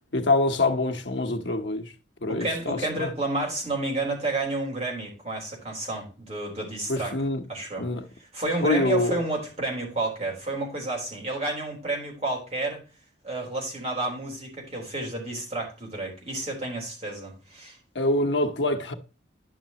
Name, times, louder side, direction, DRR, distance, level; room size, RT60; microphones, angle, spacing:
voice 1, 0.1-1.9 2.2-3.1 6.9-7.4 7.8-8.0 8.6-9.2 17.9-18.9, left 2 dB, 70° left, 1.2 m, -25 dB
voice 2, 2.3-7.2 7.5-7.9 8.2-12.8 13.2-17.8, right 2 dB, 35° right, 3.7 m, -30 dB
11.0 x 6.0 x 3.0 m
head